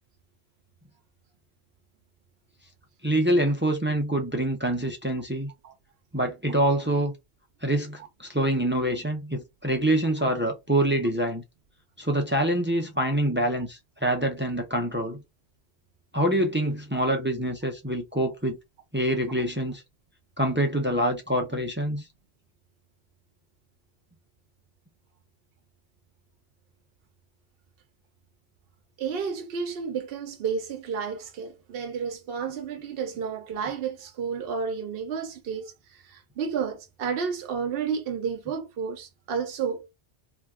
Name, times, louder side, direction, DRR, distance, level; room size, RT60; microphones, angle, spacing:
voice 1, 3.0-5.5 6.1-7.1 7.6-11.4 12.0-15.2 16.1-18.6 18.9-19.8 20.4-22.0, right 1 dB, 15° right, 0.4 m, -25 dB
voice 2, 29.0-39.9, right 6 dB, 65° right, 0.8 m, -31 dB
2.7 x 2.3 x 3.4 m
omnidirectional pair, 1.1 m